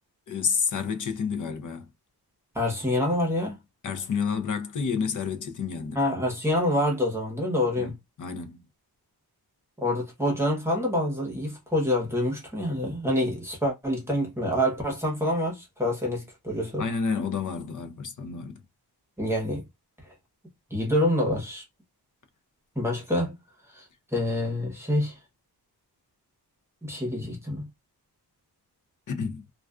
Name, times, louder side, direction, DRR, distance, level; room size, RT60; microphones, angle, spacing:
voice 1, 0.3-1.9 3.8-6.0 7.8-8.6 16.8-18.6 29.1-29.4, left 6 dB, 50° left, 0.5 m, -30 dB
voice 2, 2.5-3.6 5.9-7.9 9.8-16.8 19.2-19.6 20.7-21.6 22.8-23.4 23.7-23.9 24.1-25.1 26.8-27.7, left 1 dB, 5° right, 0.9 m, -26 dB
2.3 x 2.3 x 2.3 m
wide cardioid pair, 130°, 40 cm